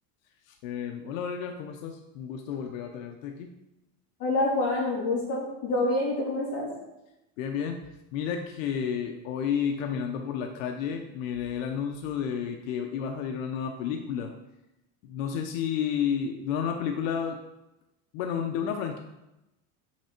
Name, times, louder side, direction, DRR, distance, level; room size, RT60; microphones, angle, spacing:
voice 1, 0.5-3.5 7.4-7.8 8.1-14.3 15.0-17.4 18.1-19.0, left 7 dB, 85° left, 4 dB, 0.8 m, -31 dB
voice 2, 4.2-6.7, left 2 dB, 35° left, -4 dB, 2.6 m, -27 dB
6.7 x 5.9 x 4.4 m, 0.94 s
cardioid pair, 170°, 38 cm